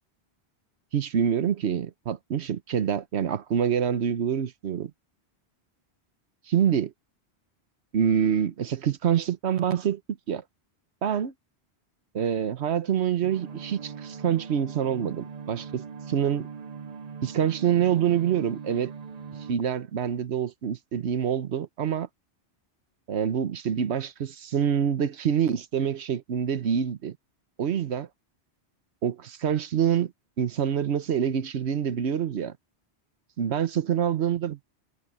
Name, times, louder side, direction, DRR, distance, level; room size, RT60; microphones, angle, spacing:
voice 1, 0.9-4.9 6.5-6.9 7.9-10.0 10.3-10.4 11.0-11.3 12.1-16.5 17.2-18.9 19.5-22.1 23.1-27.2 27.6-28.1 29.0-30.1 30.4-32.5 33.4-34.6, right 8 dB, 80° right, 1.2 m, -26 dB
sound 1, 13.2-19.5, right 6 dB, 45° right, 0.6 m, -41 dB
omnidirectional pair, 1.1 m